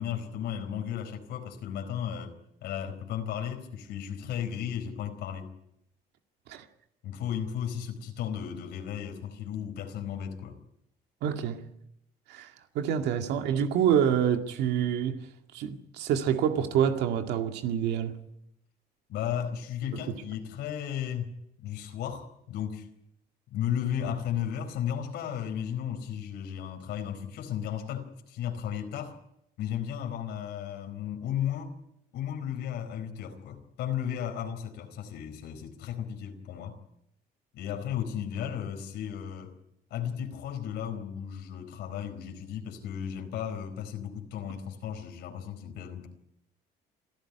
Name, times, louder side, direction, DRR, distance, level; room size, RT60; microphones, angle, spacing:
voice 1, 0.0-5.5 7.0-10.6 19.1-21.3 21.6-22.9 23.5-29.1 29.6-31.8 32.1-36.8 37.5-39.5 39.9-46.1, left 9 dB, 80° left, 4.5 m, -34 dB
voice 2, 11.2-11.6 12.3-15.2 15.5-18.2, right 9 dB, 80° right, 2.1 m, -27 dB
27.0 x 14.0 x 9.9 m
cardioid pair, 110°, 17 cm